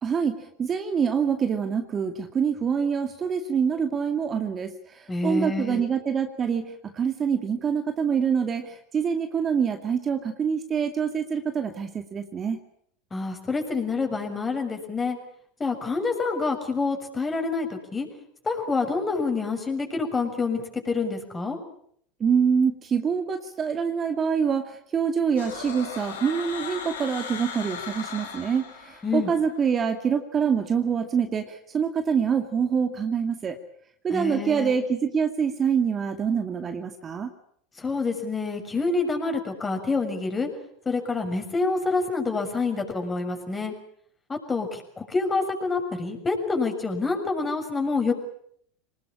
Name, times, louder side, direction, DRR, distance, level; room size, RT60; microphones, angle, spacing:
voice 1, 0.0-12.6 22.2-33.6 34.0-37.3, right 6 dB, 30° right, 6 dB, 2.4 m, -25 dB
voice 2, 5.1-5.8 13.1-15.2 15.6-18.1 18.4-21.6 29.0-29.3 34.1-34.8 37.8-40.5 40.8-43.7 44.3-48.1, left 4 dB, 20° left, 5 dB, 6.7 m, -27 dB
sound 1, 25.4-29.4, left 6 dB, 85° left, 5.8 m, -37 dB
25.5 x 20.0 x 8.6 m, 0.67 s
hypercardioid pair, 90°, 0 cm